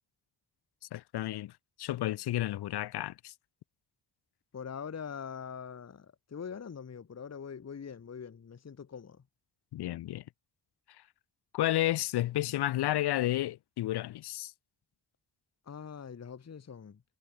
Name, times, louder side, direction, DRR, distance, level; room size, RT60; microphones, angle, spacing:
voice 1, 0.9-1.5 1.8-3.3 9.7-10.2 11.5-14.5, left 14 dB, 65° left, 0.5 m, -31 dB
voice 2, 4.5-9.2 15.7-17.0, left 7 dB, 35° left, 1.1 m, -43 dB
cardioid pair, 85°, 44 cm